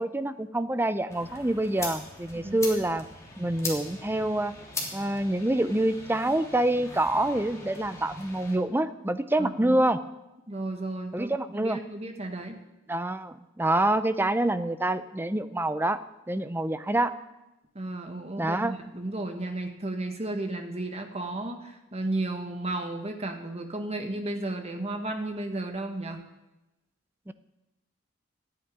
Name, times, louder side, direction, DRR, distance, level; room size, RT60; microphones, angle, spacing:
voice 1, 0.0-3.1 3.4-4.5 4.9-10.0 11.1-11.8 12.9-16.0 16.3-17.1 18.4-18.7 27.3-27.4, right 1 dB, 10° right, 12 dB, 0.5 m, -26 dB
sound 1, 1.1-8.6, left 3 dB, 15° left, 3.1 m, -40 dB
voice 2, 9.4-9.8 10.5-12.6 17.7-26.2, right 2 dB, 30° right, 4 dB, 1.6 m, -33 dB
12.5 x 9.0 x 9.6 m, 0.98 s
head